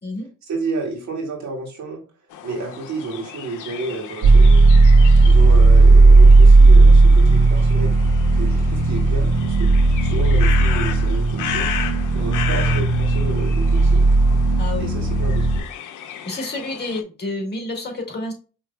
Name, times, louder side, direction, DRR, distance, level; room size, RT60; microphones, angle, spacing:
voice 1, 0.4-2.0 2.4-4.8 5.2-8.0 8.3-9.7 10.0-11.7 12.1-14.0 14.8-15.7, right 3 dB, 65° right, 0 dB, 2.1 m, -31 dB
sound 1, 2.3-17.0, left 9 dB, 85° left, 0.7 m, -34 dB
sound 2, 4.2-15.6, right 3 dB, 90° right, 2.2 m, -13 dB
voice 2, 14.6-14.9 16.2-18.3, left 2 dB, 35° left, 2 dB, 2.3 m, -29 dB
5.5 x 3.5 x 2.2 m, 0.35 s
cardioid pair, 90°, 30 cm